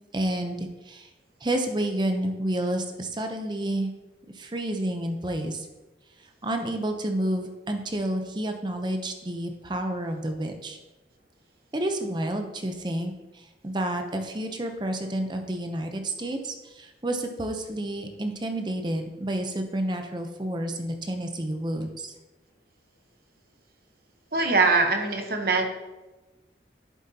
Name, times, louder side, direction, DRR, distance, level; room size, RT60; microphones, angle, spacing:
voice 1, 0.1-1.1 1.4-3.9 4.3-5.7 6.4-10.8 11.7-22.1, right 1 dB, 25° right, 5 dB, 0.7 m, -30 dB
voice 2, 24.3-25.6, right 3 dB, 55° right, 4 dB, 1.0 m, -22 dB
11.0 x 7.7 x 2.9 m, 1.1 s
head